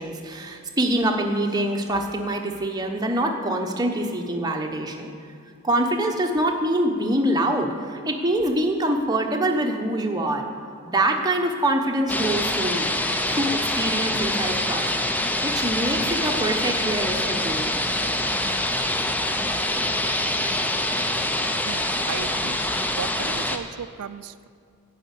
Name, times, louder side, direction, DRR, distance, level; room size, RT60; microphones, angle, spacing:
voice 1, 0.0-5.1 5.6-10.5 10.8-12.9 13.3-17.7, right 1 dB, 15° right, 2 dB, 0.9 m, -25 dB
sound 1, 12.1-23.6, left 1 dB, 5° left, 0.4 m, -25 dB
voice 2, 21.6-22.6 23.0-24.5, right 7 dB, 85° right, 14 dB, 0.4 m, -35 dB
11.0 x 5.7 x 8.2 m, 2.4 s
head